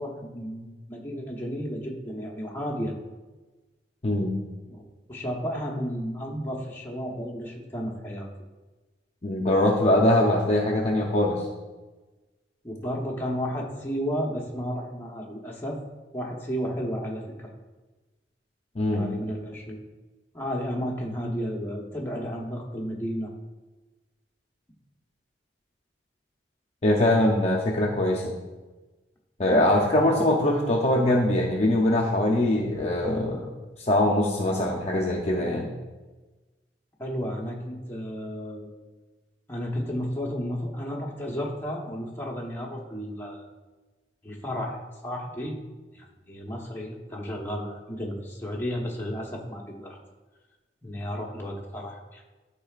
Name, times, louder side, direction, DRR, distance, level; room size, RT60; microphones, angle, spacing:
voice 1, 0.0-3.0 4.7-8.3 12.6-15.8 16.1-17.5 18.9-19.8 20.3-23.3 37.0-38.7 39.5-43.5 44.2-45.6 45.9-50.0 50.8-52.2, equal, 10° left, -2 dB, 1.0 m, -33 dB
voice 2, 4.0-4.3 9.2-11.5 18.8-19.1 26.8-28.3 29.4-33.5 33.8-35.7, left 1 dB, 35° left, -1 dB, 0.6 m, -22 dB
12.5 x 4.5 x 2.4 m, 1.2 s
head